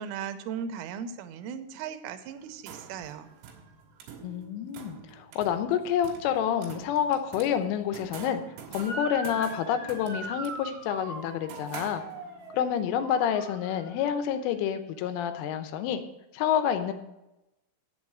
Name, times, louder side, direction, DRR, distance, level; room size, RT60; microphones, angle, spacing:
voice 1, 0.0-3.3, right 7 dB, 90° right, 9 dB, 3.3 m, -37 dB
sound 1, 2.4-12.5, right 7 dB, 70° right, 3.5 m, -47 dB
voice 2, 4.2-8.4 8.7-12.0 12.5-16.0 16.3-16.9, left 9 dB, 85° left, 9 dB, 3.3 m, -28 dB
Motor vehicle (road) / Siren, 8.8-14.0, right 1 dB, 45° right, 1.2 m, -40 dB
8.8 x 7.5 x 6.1 m, 0.94 s
omnidirectional pair, 5.6 m